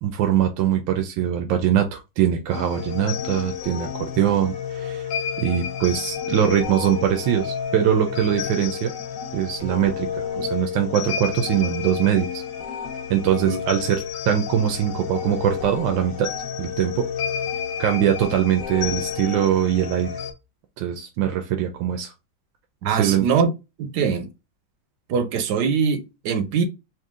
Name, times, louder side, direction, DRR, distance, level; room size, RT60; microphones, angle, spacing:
voice 1, 0.0-5.1 5.4-8.9 9.3-12.4 13.1-16.3 16.6-17.1 17.8-20.2 20.8-22.1 22.9-23.3, right 10 dB, 85° right, 1.4 m, -22 dB
sound 1, 2.5-20.3, left 7 dB, 70° left, 1.5 m, -30 dB
voice 2, 22.8-23.5 23.8-24.3 25.1-26.6, right 6 dB, 70° right, 1.1 m, -22 dB
4.5 x 2.6 x 3.6 m
omnidirectional pair, 2.0 m